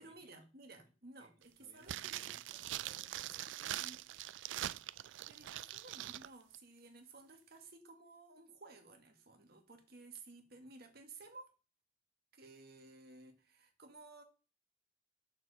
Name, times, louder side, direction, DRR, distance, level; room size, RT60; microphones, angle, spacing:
voice 1, 0.0-2.2 3.7-4.0 5.3-11.5 12.3-14.2, right 3 dB, 55° right, 1.7 m, -56 dB
voice 2, 1.6-4.4, right 1 dB, 25° right, 2.0 m, -66 dB
sound 1, 1.8-6.3 6.5-6.6, right 13 dB, 70° right, 0.3 m, -43 dB
7.3 x 6.8 x 4.1 m
head